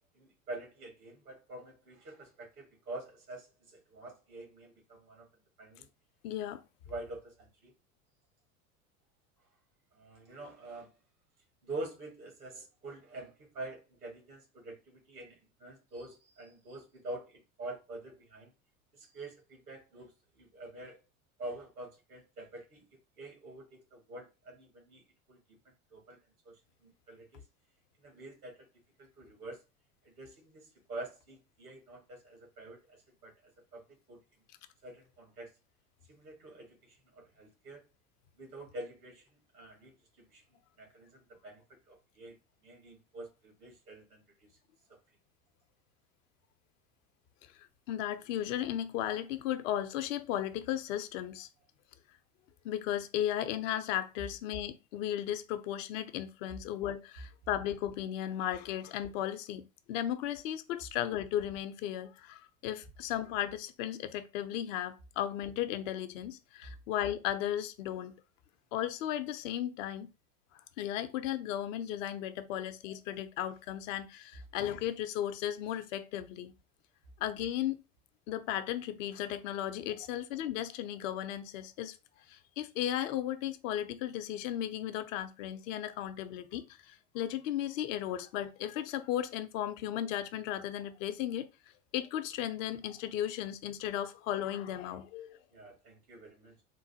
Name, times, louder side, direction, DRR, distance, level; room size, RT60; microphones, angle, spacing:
voice 1, 0.1-5.3 5.6-5.9 6.9-7.7 9.9-10.9 11.6-18.5 18.9-21.0 21.4-22.8 23.2-25.0 25.3-25.4 25.9-26.2 26.4-26.5 26.8-27.4 28.0-28.7 29.0-29.6 30.0-33.3 33.7-33.8 34.1-34.2 34.8-35.5 36.1-37.8 38.3-39.3 39.5-42.4 42.6-44.2 95.5-96.6, right 2 dB, 90° right, 1.6 m, -46 dB
voice 2, 6.2-6.6 47.9-51.5 52.6-59.6 59.9-68.1 68.7-70.1 70.8-76.5 77.2-77.8 78.3-82.0 82.3-91.5 91.9-95.4, left 11 dB, 60° left, 0.6 m, -35 dB
3.8 x 2.1 x 2.7 m
hypercardioid pair, 85°, 43 cm